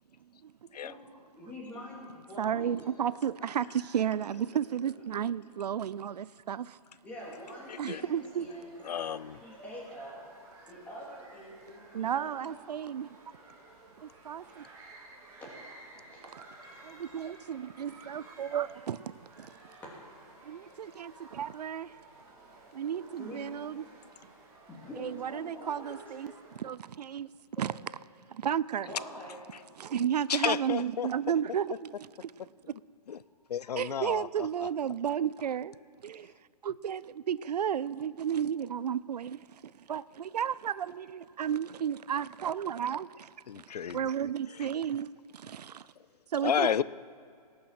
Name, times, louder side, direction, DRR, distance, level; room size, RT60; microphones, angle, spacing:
voice 1, 0.4-0.8 2.4-6.8 7.8-8.5 11.9-13.2 14.0-14.7 16.8-19.5 20.4-22.0 22.7-23.9 25.0-26.3 26.6-27.3 27.6-27.7 28.3-28.9 29.8-31.9 32.2-32.3 33.8-35.7 36.0-36.3 36.6-45.9 46.3-46.7, right 9 dB, 90° right, 0.4 m, -33 dB
voice 2, 1.4-3.0 7.0-8.8 9.4-10.2 10.7-12.5 15.8-16.3 23.1-23.4 24.7-26.0 28.8-29.4, equal, 10° left, 2.6 m, -45 dB
sound 1, 7.2-26.6, right 2 dB, 15° right, 2.1 m, -54 dB
voice 3, 7.7-8.0 8.8-9.4 29.5-29.6 30.3-31.1 33.1-33.2 33.5-34.7 43.5-44.0 44.6-44.7 46.4-46.8, left 8 dB, 90° left, 0.5 m, -32 dB
18.5 x 6.5 x 5.9 m
hypercardioid pair, 160°, 20 cm